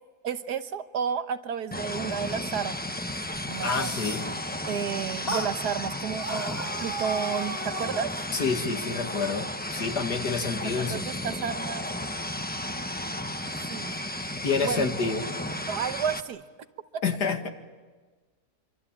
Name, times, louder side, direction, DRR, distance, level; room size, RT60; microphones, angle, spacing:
voice 1, 0.2-2.8 3.5-3.9 4.7-8.2 10.6-11.8 13.7-13.9 14.6-14.9 15.7-16.4 16.9-17.0, right 7 dB, 85° right, 10 dB, 1.6 m, -31 dB
sound 1, 1.7-16.2, left 1 dB, 10° left, 0.7 m, -34 dB
sound 2, 3.3-4.3 5.3-5.5 6.2-8.1, right 1 dB, 35° left, 3.3 m, -35 dB
voice 2, 3.6-4.3 8.3-11.0 14.4-15.2 17.0-17.5, left 5 dB, 85° left, 5 dB, 2.5 m, -28 dB
26.0 x 25.5 x 8.8 m, 1.3 s
omnidirectional pair, 1.7 m